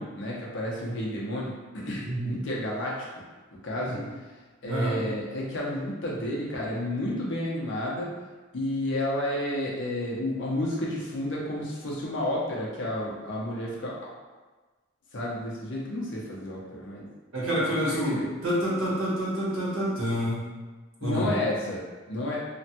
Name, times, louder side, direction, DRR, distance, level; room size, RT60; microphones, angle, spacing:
voice 1, 0.0-3.1 3.6-4.0 4.6-8.1 8.5-14.1 15.1-17.0 17.6-18.3 21.0-22.4, left 1 dB, 65° left, -4 dB, 0.7 m, -31 dB
voice 2, 2.0-2.4 3.8-4.0 4.6-5.0 17.3-20.4 21.0-21.3, equal, 90° right, -8 dB, 1.2 m, -28 dB
3.1 x 2.2 x 2.8 m, 1.3 s
head